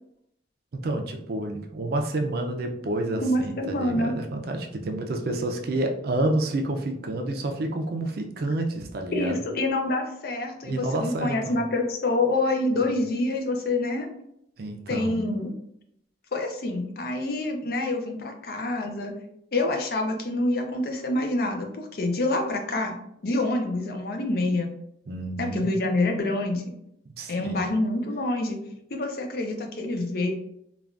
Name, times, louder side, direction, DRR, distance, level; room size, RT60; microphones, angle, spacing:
voice 1, 0.7-9.4 10.6-11.6 14.6-15.2 25.1-25.7 27.2-27.7, right 1 dB, 55° right, 3 dB, 0.4 m, -29 dB
voice 2, 3.2-4.1 9.1-14.1 14.9-15.5 16.3-19.1 19.5-23.0 23.2-24.7 25.4-26.7 27.3-28.6 28.9-30.3, left 2 dB, 55° left, 3 dB, 0.5 m, -26 dB
3.4 x 2.3 x 2.4 m, 0.76 s
head